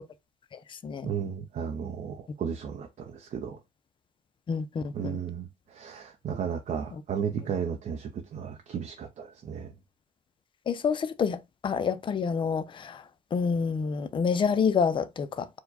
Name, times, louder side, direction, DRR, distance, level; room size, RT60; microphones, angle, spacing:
voice 1, 0.5-1.1 4.5-5.2 10.7-13.0 13.3-15.5, left 6 dB, 30° left, 0.5 m, -28 dB
voice 2, 1.0-3.6 4.9-9.7, right 7 dB, 45° right, 0.6 m, -34 dB
4.7 x 2.2 x 4.0 m
cardioid pair, 110°, 17 cm